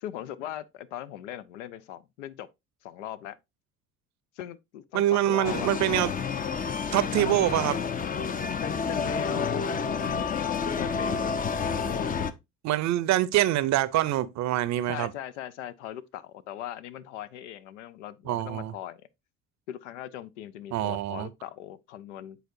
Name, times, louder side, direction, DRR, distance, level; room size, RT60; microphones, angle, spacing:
voice 1, 0.0-2.5 2.8-3.4 4.4-5.8 7.2-7.3 8.6-9.7 10.2-12.1 14.8-19.1 19.7-22.4, left 11 dB, 80° left, 0.5 m, -39 dB
voice 2, 4.9-6.1 6.9-7.8 12.6-15.1 18.3-18.7 20.7-21.3, right 13 dB, 50° right, 0.6 m, -25 dB
sound 1, 5.4-12.3, left 5 dB, 25° left, 0.5 m, -29 dB
9.1 x 3.9 x 2.6 m
hypercardioid pair, 60°, 36 cm